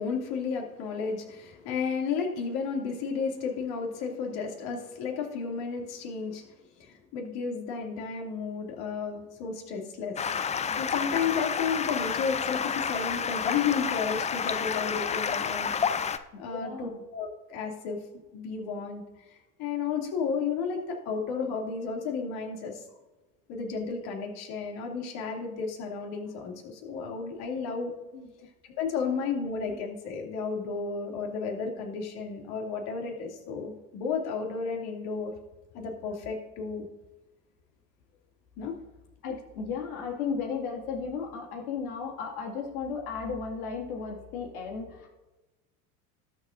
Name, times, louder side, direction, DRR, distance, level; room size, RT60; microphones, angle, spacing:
voice 1, 0.0-10.3 10.8-15.7 16.3-18.0 18.3-19.0 19.3-22.8 23.5-27.9 28.8-35.3 35.7-36.9 38.6-38.7, left 5 dB, 55° left, 1 dB, 2.7 m, -33 dB
Stream, 10.2-16.2, left 7 dB, 15° left, 0.5 m, -30 dB
voice 2, 16.5-17.0 28.1-28.3 39.2-45.1, left 5 dB, 75° left, 1 dB, 2.3 m, -35 dB
19.5 x 7.2 x 2.6 m, 1.1 s
hypercardioid pair, 75°, 44 cm